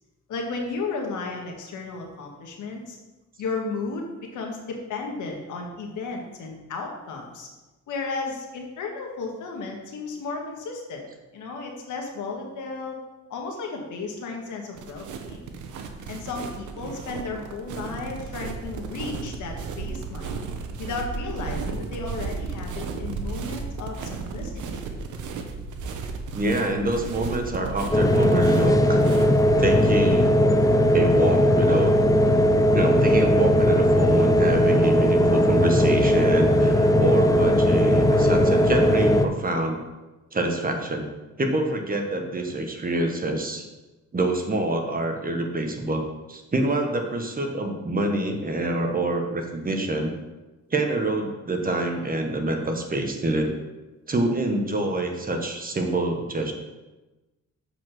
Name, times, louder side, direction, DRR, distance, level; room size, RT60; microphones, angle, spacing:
voice 1, 0.3-3.0 3.4-7.5 7.9-11.0 11.3-13.0 13.3-15.4 16.1-20.4 20.8-24.8, left 4 dB, 80° left, 1 dB, 1.7 m, -34 dB
sound 1, 14.7-30.1, right 5 dB, 80° right, 1.0 m, -34 dB
voice 2, 26.3-29.0 29.6-30.3 30.9-31.9 32.7-39.8 40.3-41.0 41.4-43.6 44.1-46.0 46.3-50.1 50.7-53.5 54.1-56.5, right 2 dB, 30° right, 3 dB, 1.3 m, -26 dB
sound 2, 27.9-39.2, equal, 10° left, 0.6 m, -19 dB
7.3 x 4.9 x 6.0 m, 1.1 s
cardioid pair, 90°, 30 cm